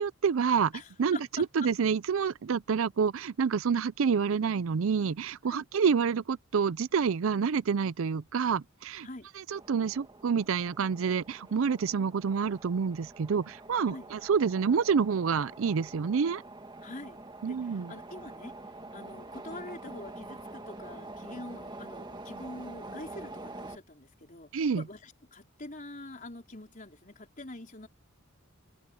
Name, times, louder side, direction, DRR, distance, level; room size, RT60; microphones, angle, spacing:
voice 1, 0.0-0.7 1.0-9.1 9.4-16.4 17.4-17.9 24.5-24.8, right 6 dB, 75° right, 0.4 m, -28 dB
voice 2, 0.7-1.7 5.5-5.7 9.0-9.3 13.9-14.1 16.8-18.6 18.9-24.5 24.8-27.9, left 2 dB, 40° left, 4.5 m, -45 dB
sound 1, 9.5-23.8, right 2 dB, 20° right, 1.8 m, -46 dB
head